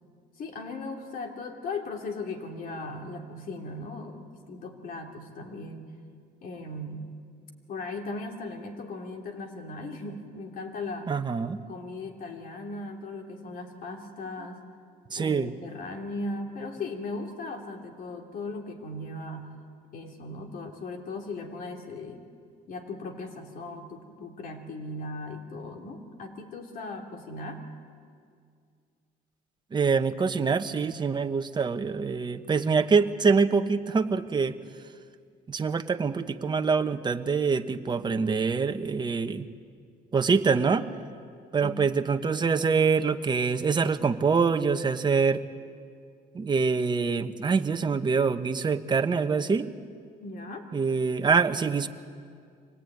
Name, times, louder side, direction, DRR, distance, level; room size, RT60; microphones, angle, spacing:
voice 1, 0.4-5.9 6.4-7.1 7.7-11.1 11.7-14.6 15.1-19.6 19.9-22.2 22.7-27.6 41.6-41.8 50.2-50.7, left 2 dB, 55° left, 3 dB, 3.1 m, -38 dB
voice 2, 11.1-11.6 15.1-15.5 29.7-34.6 35.5-39.5 40.1-40.9 41.5-45.4 46.3-49.7 50.7-51.9, right 5 dB, 25° right, 7 dB, 1.1 m, -25 dB
25.0 x 18.5 x 9.3 m, 2.2 s
cardioid pair, 110°, 17 cm